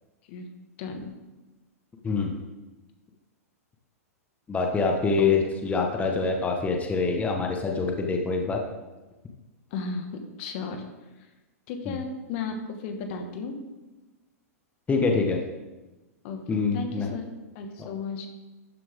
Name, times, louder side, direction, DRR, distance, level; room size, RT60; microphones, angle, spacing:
voice 1, 0.8-1.1 5.2-5.3 9.7-10.8 11.7-13.5 16.2-17.2 17.5-18.3, left 5 dB, 50° left, 5 dB, 1.6 m, -34 dB
voice 2, 2.0-2.4 4.5-8.6 11.9-12.0 14.9-15.4 16.5-17.1 17.8-17.9, left 4 dB, 15° left, 1 dB, 1.3 m, -25 dB
12.0 x 7.5 x 3.6 m, 1.1 s
hypercardioid pair, 110°, 8 cm